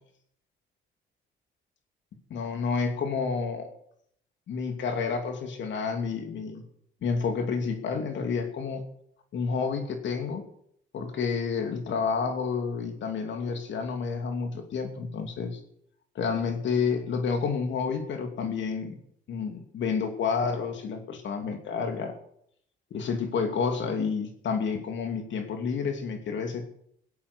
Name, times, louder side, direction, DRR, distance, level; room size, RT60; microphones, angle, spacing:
voice 1, 2.3-3.7 4.5-6.6 7.0-8.9 9.3-10.4 10.9-15.6 16.1-19.0 19.3-22.2 22.9-26.6, left 5 dB, 70° left, 5 dB, 2.7 m, -30 dB
17.0 x 8.4 x 6.8 m, 0.70 s
cardioid pair, 90°, 20 cm